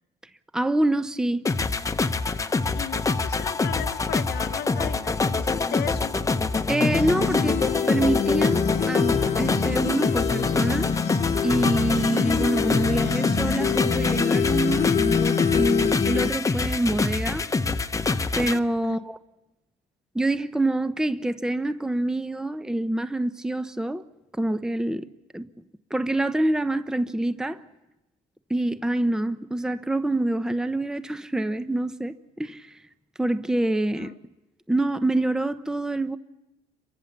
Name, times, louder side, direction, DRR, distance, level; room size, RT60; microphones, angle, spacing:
voice 1, 0.5-1.5 6.7-10.9 11.4-17.5 18.4-19.2 20.1-24.0 24.4-25.1 25.3-25.5 25.9-27.6 28.5-32.7 33.2-34.1 34.7-36.2, right 1 dB, 5° right, 0.8 m, -26 dB
sound 1, 1.5-18.6, left 3 dB, 20° left, 1.0 m, -26 dB
voice 2, 2.7-6.2 18.8-19.1 33.9-34.2, left 12 dB, 70° left, 1.1 m, -36 dB
sound 2, 6.7-16.3, left 7 dB, 40° left, 1.2 m, -25 dB
27.5 x 23.5 x 7.2 m
cardioid pair, 110°, 17 cm